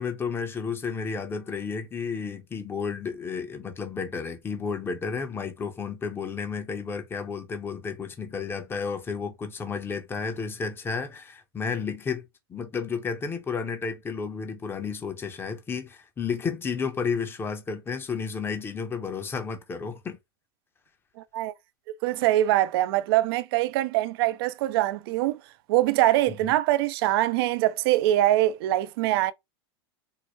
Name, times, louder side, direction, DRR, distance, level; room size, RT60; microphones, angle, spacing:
voice 1, 0.0-20.2 26.3-26.5, left 5 dB, 15° left, 0.8 m, -32 dB
voice 2, 22.0-25.4 25.7-29.3, right 15 dB, 65° right, 0.5 m, -23 dB
4.4 x 2.1 x 3.1 m
supercardioid pair, 125°, 13 cm